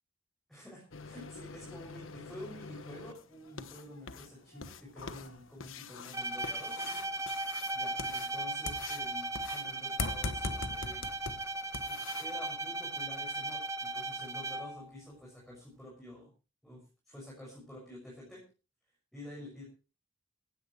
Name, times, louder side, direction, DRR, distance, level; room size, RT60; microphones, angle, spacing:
voice 1, 0.5-6.8 7.7-11.0 11.8-16.3 16.6-18.4 19.1-19.6, left 1 dB, ahead, -4 dB, 6.4 m, -49 dB
sound 1, 0.9-12.3, left 4 dB, 75° left, 1.2 m, -43 dB
Bowed string instrument, 6.1-14.9, right 2 dB, 15° right, 1.3 m, -37 dB
16.5 x 16.5 x 3.2 m, 0.34 s
head